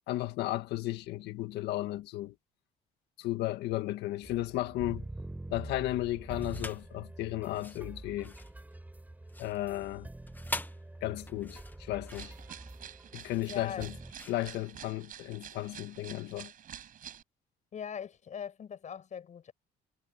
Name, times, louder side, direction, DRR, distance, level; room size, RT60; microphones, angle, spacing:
voice 1, 0.1-2.3 3.2-5.1 5.5-8.3 9.4-10.1 11.0-12.3 13.1-13.9 14.3-16.5, left 16 dB, 85° left, 1.8 m, -34 dB
sound 1, 4.2-14.1, right 1 dB, 10° right, 7.0 m, -46 dB
sound 2, 6.4-6.9 7.4-15.3, left 2 dB, 10° left, 1.4 m, -44 dB
sound 3, 12.1-17.2, right 10 dB, 55° right, 5.0 m, -49 dB
voice 2, 13.4-13.9 17.7-19.5, left 7 dB, 45° left, 8.0 m, -41 dB
cardioid pair, 110°, 17 cm